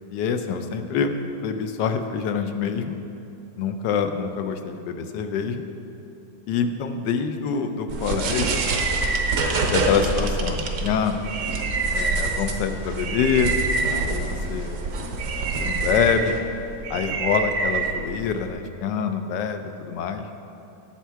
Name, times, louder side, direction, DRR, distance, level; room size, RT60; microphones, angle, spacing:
voice 1, 0.1-3.0 3.6-5.6 6.5-8.6 9.7-11.2 11.9-13.6 14.0-14.8 15.6-16.4 16.9-20.3, left 6 dB, 80° left, 7 dB, 1.3 m, -25 dB
sound 1, 7.9-18.5, right 3 dB, 75° right, 1.4 m, -26 dB
10.0 x 7.1 x 4.6 m, 2.8 s
omnidirectional pair, 1.9 m